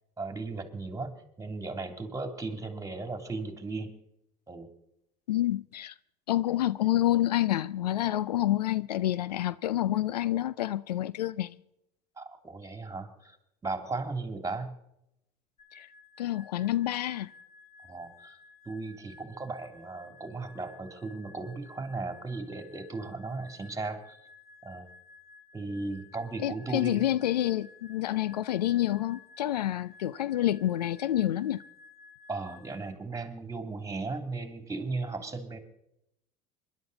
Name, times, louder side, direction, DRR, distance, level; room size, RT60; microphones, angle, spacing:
voice 1, 0.2-3.9 4.5-4.7 12.2-13.4 13.6-14.7 17.8-18.4 18.7-24.2 24.6-24.8 25.5-27.1 32.3-35.6, right 3 dB, 15° right, 2.9 m, -36 dB
voice 2, 5.3-5.9 6.3-11.6 15.7-15.9 16.2-17.3 26.4-31.6, left 13 dB, 85° left, 0.5 m, -28 dB
sound 1, 15.6-32.9, left 4 dB, 35° left, 2.2 m, -55 dB
26.0 x 11.5 x 4.0 m
hypercardioid pair, 70°, 20 cm